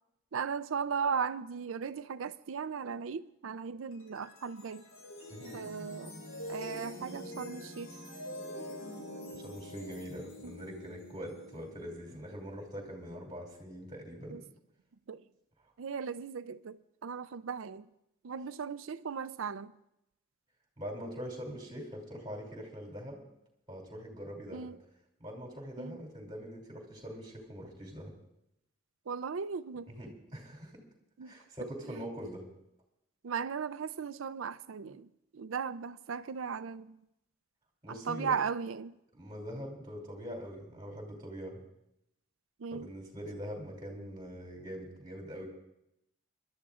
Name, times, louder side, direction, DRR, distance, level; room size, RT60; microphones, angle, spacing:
voice 1, 0.3-4.9 5.5-6.2 6.5-7.9 10.4-10.5 14.3-14.4 15.1-15.2 15.8-16.8 17.0-17.9 18.2-19.7 24.5-24.8 25.8-26.0 29.1-29.9 31.2-31.3 31.9-32.0 33.2-35.1 35.3-37.0 37.9-39.0 42.6-42.9, right 6 dB, 85° right, 0.5 m, -37 dB
sound 1, 3.9-13.2, left 1 dB, 80° left, 3.2 m, -46 dB
voice 2, 9.3-14.4 20.8-23.2 23.7-24.7 25.2-28.1 29.9-30.8 31.2-32.5 37.8-38.4 39.1-41.6 42.7-45.5, equal, 20° right, 2.8 m, -43 dB
27.5 x 12.0 x 2.5 m
head